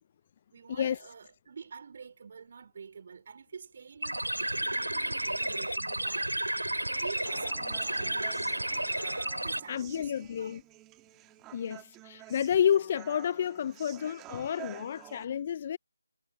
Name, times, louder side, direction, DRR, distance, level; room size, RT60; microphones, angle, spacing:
voice 1, 0.5-8.9 9.3-10.6, right 6 dB, 40° right, 4.4 m, -47 dB
sound 1, 4.0-9.6, right 1 dB, 85° right, 4.6 m, -32 dB
Human voice, 7.3-15.2, right 18 dB, 10° right, 2.9 m, -50 dB
voice 2, 9.7-10.6 11.5-15.8, left 9 dB, 30° left, 0.5 m, -30 dB
figure-of-eight pair, 155°, 0 cm